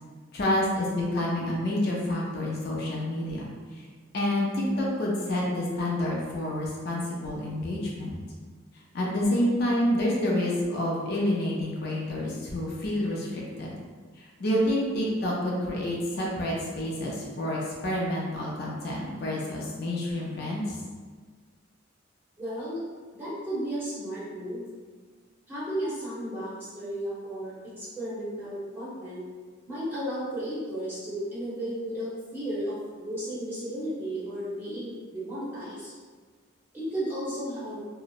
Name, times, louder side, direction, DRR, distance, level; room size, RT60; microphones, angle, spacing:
voice 1, 0.3-3.5 4.1-8.2 8.9-13.7 14.2-20.8, left 1 dB, 50° left, -4 dB, 0.4 m, -28 dB
voice 2, 22.4-22.8 23.1-24.6 25.5-29.2 29.7-35.9 36.7-37.8, right 1 dB, 10° right, -12 dB, 0.9 m, -34 dB
2.8 x 2.0 x 2.4 m, 1.5 s
head